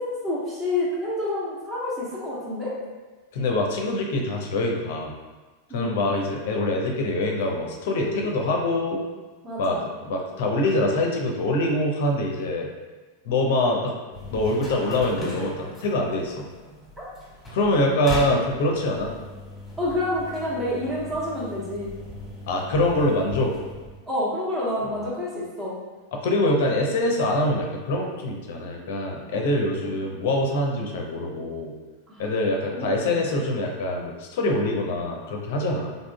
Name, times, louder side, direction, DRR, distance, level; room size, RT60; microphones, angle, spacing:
voice 1, 0.0-2.7 5.7-6.0 9.4-9.9 17.0-17.1 19.8-21.9 24.1-25.8 29.8-29.9 32.1-32.3 32.7-33.2, left 1 dB, 20° right, -6 dB, 1.2 m, -28 dB
voice 2, 3.3-5.1 5.7-9.0 9.6-12.7 13.2-13.9 14.3-16.5 17.5-19.1 22.5-23.5 26.1-31.7 32.2-36.0, left 1 dB, 55° left, 1 dB, 0.5 m, -24 dB
sound 1, 14.1-24.0, equal, 10° left, 1.4 m, -38 dB
3.8 x 3.6 x 2.2 m, 1.3 s
figure-of-eight pair, 90°, 0 cm